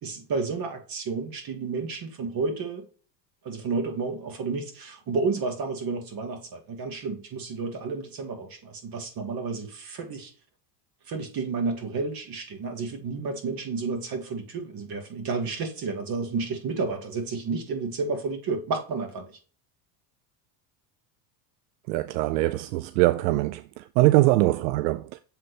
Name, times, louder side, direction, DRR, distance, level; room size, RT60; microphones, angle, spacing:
voice 1, 0.0-2.8 3.4-10.3 11.1-19.3, right 4 dB, 45° right, 2.3 m, -31 dB
voice 2, 21.9-25.2, right 18 dB, 80° right, 0.6 m, -22 dB
7.3 x 3.9 x 3.4 m
supercardioid pair, 95°, 49 cm